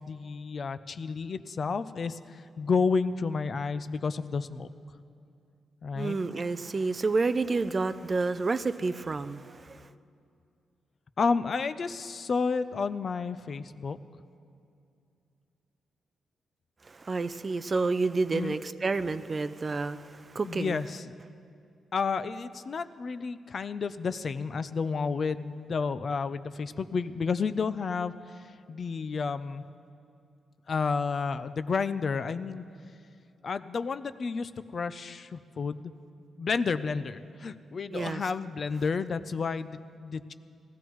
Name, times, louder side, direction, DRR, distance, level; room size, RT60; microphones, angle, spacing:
voice 1, 0.0-4.7 5.8-6.2 11.2-14.0 18.3-18.6 20.4-21.1 21.9-28.1 28.7-29.6 30.7-32.6 33.4-35.9 36.4-40.3, left 5 dB, 45° left, 12 dB, 0.4 m, -31 dB
voice 2, 5.9-9.9 16.9-20.8 37.9-38.2, right 3 dB, 30° right, 12 dB, 0.4 m, -29 dB
19.0 x 14.0 x 3.1 m, 2.5 s
cardioid pair, 115°, 0 cm